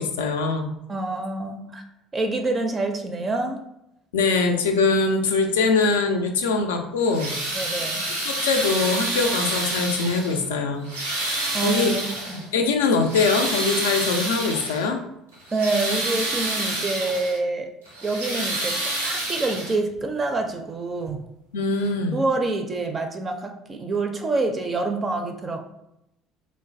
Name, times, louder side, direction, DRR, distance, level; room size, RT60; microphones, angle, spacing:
voice 1, 0.0-0.7 4.1-7.4 8.2-10.9 11.2-11.3 11.6-11.9 12.5-15.0 21.5-22.2, left 4 dB, 75° left, 5 dB, 0.3 m, -22 dB
voice 2, 0.9-1.8 2.1-3.6 7.5-8.0 11.5-12.5 15.5-17.7 18.0-21.2 22.1-25.6, right 3 dB, 30° right, 4 dB, 0.4 m, -27 dB
sound 1, 7.0-10.4 10.8-12.5 12.9-14.9 15.3-17.4 17.9-20.0 21.1-21.2 21.8-21.9, right 1 dB, 85° right, 0.6 m, -28 dB
3.0 x 2.1 x 2.6 m, 0.84 s
figure-of-eight pair, 60°, 0 cm